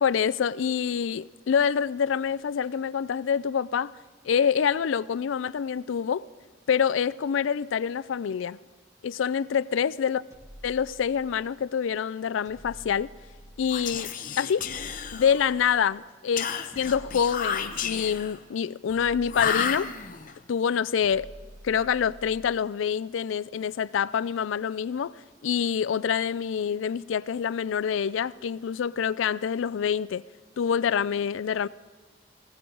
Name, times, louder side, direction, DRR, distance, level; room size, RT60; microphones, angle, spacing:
voice 1, 0.0-3.9 4.2-6.2 6.7-8.6 9.0-10.2 10.6-13.1 13.6-14.1 14.4-14.7 15.1-16.5 16.8-19.9 20.5-21.3 21.6-25.1 25.4-30.2 30.6-31.7, left 7 dB, 90° left, 0.4 m, -26 dB
sound 1, 10.3-11.6 12.5-14.1 14.6-16.0 16.7-18.3 18.9-20.3 21.0-22.6, equal, 20° right, 2.3 m, -49 dB
Whispering, 13.6-15.6 16.4-18.4 19.3-20.3, left 6 dB, 45° left, 0.8 m, -32 dB
20.0 x 16.0 x 3.9 m
head